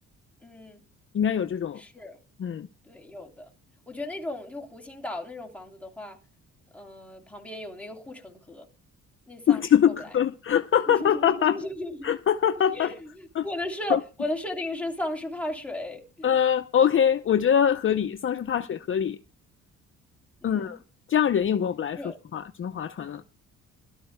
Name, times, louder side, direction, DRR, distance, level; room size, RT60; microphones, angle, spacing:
voice 1, 0.4-0.8 1.8-2.2 2.9-3.4 3.9-6.2 6.7-8.6 9.3-9.9 10.9-12.1 12.7-16.3 20.4-20.8 22.0-22.1, left 1 dB, 5° left, 3.2 m, -35 dB
voice 2, 1.1-1.8 2.4-2.7 9.5-11.6 12.0-12.9 13.3-13.5 13.9-14.0 16.2-19.2 20.4-20.8 21.1-22.0 22.3-23.2, left 9 dB, 45° left, 0.7 m, -23 dB
22.0 x 12.5 x 2.2 m
cardioid pair, 90°, 30 cm